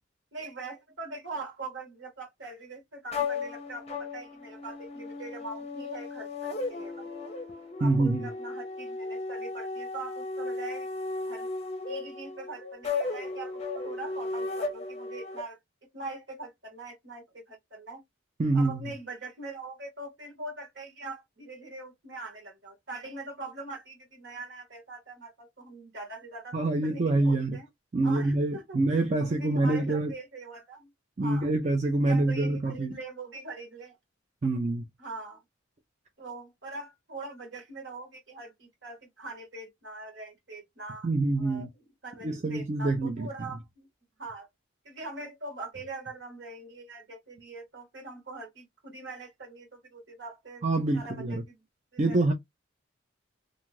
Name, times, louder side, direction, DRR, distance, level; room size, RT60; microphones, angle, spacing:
voice 1, 0.3-7.3 7.8-10.9 11.3-11.5 11.9-15.6 15.9-18.0 18.5-27.7 28.0-28.8 29.2-30.9 31.2-31.5 32.0-34.0 35.0-35.4 36.2-41.1 41.4-43.9 44.2-44.5 44.8-50.6 50.9-51.6 51.9-52.2, right 3 dB, 60° right, 1.3 m, -42 dB
sound 1, 3.1-15.4, left 3 dB, 30° left, 0.6 m, -35 dB
voice 2, 7.8-8.3 18.4-18.8 26.5-27.6 27.9-30.1 31.2-32.9 34.4-34.8 41.0-41.7 42.2-43.3 50.6-51.4 52.0-52.3, right 2 dB, 35° right, 0.4 m, -26 dB
2.6 x 2.3 x 3.1 m
head